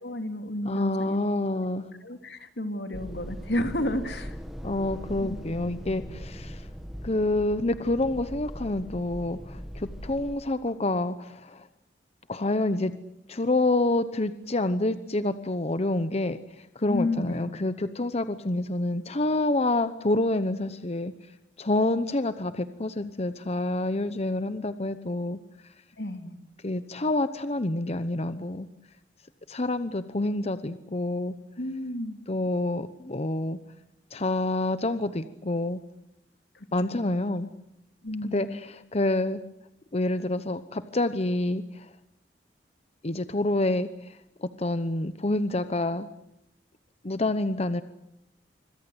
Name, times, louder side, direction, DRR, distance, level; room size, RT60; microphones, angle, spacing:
voice 1, 0.0-1.2 2.0-4.4 5.2-6.1 16.9-17.5 26.0-26.3 31.6-32.2 36.5-37.0 38.0-38.5, left 1 dB, 70° left, 8 dB, 3.0 m, -32 dB
voice 2, 0.6-1.9 4.6-6.7 7.0-11.7 12.3-12.9 13.3-21.1 21.6-25.7 26.6-28.7 29.5-31.4 32.3-33.6 34.1-35.8 36.7-37.5 38.2-39.4 39.9-41.9 43.0-46.1 47.0-47.8, left 2 dB, 40° left, 12 dB, 0.9 m, -28 dB
sound 1, 2.9-10.3, equal, ahead, 2.1 m, -40 dB
26.0 x 25.5 x 8.0 m, 0.80 s
head